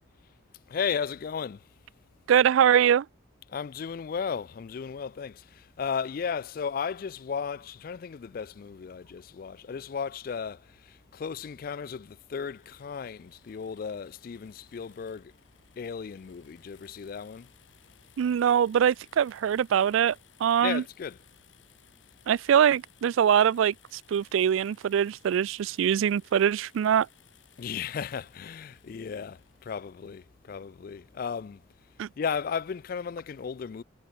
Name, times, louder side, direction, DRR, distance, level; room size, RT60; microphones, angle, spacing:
voice 1, 0.7-1.7 3.5-15.3 15.8-17.5 20.6-21.2 27.6-31.6 32.2-33.8, left 6 dB, 45° left, 0.3 m, -35 dB
voice 2, 2.3-3.1 18.2-20.8 22.3-27.1 32.0-32.1, right 8 dB, 85° right, 0.3 m, -23 dB
sound 1, 12.4-30.1, left 9 dB, 75° left, 4.2 m, -61 dB
head